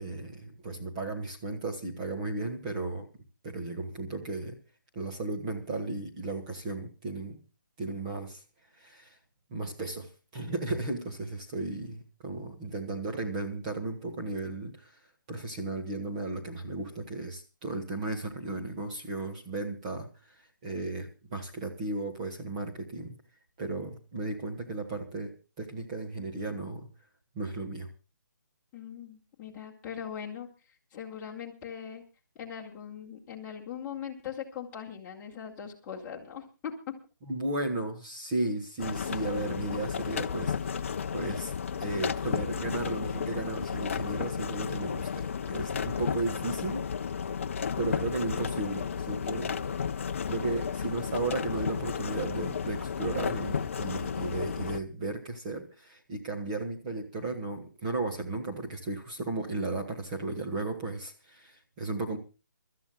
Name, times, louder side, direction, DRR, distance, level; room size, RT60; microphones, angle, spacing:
voice 1, 0.0-3.1 3.4-4.6 4.9-7.4 7.8-8.4 8.8-9.2 9.5-15.0 15.3-23.2 23.6-26.9 27.4-27.9 37.3-40.9 41.1-41.5 41.8-46.9 47.8-49.7 50.3-62.2, right 2 dB, 20° right, 2 dB, 1.7 m, -35 dB
voice 2, 28.7-30.5 30.9-32.0 32.3-36.9, left 8 dB, 10° left, -2 dB, 2.2 m, -40 dB
sound 1, 38.8-54.8, left 7 dB, 40° left, 0.6 m, -33 dB
28.0 x 13.5 x 2.3 m, 0.31 s
hypercardioid pair, 170°, 11 cm